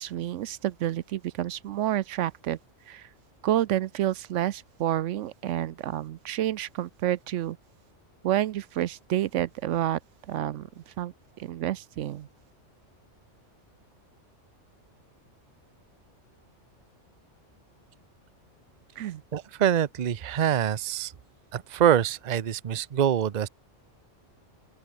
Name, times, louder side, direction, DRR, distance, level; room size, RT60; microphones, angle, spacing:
voice 1, 0.0-2.6 2.9-3.1 3.4-7.6 8.2-10.0 10.3-10.7 11.0-12.3 19.0-19.2, right 12 dB, 75° right, 0.9 m, -29 dB
voice 2, 19.3-21.1 21.5-23.5, right 9 dB, 45° right, 0.7 m, -25 dB
open air
omnidirectional pair, 1.3 m